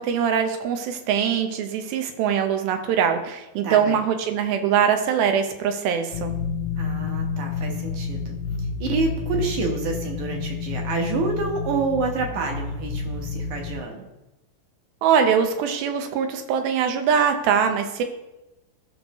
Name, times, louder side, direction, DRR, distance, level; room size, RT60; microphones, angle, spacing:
voice 1, 0.0-6.3 15.0-18.0, right 7 dB, 85° right, 6 dB, 2.7 m, -22 dB
voice 2, 3.6-4.0 6.8-8.4 8.8-14.1, right 4 dB, 60° right, 2 dB, 2.4 m, -28 dB
sound 1, 6.1-13.8, left 5 dB, 90° left, 2.6 m, -29 dB
15.0 x 6.3 x 3.1 m, 0.97 s
omnidirectional pair, 4.2 m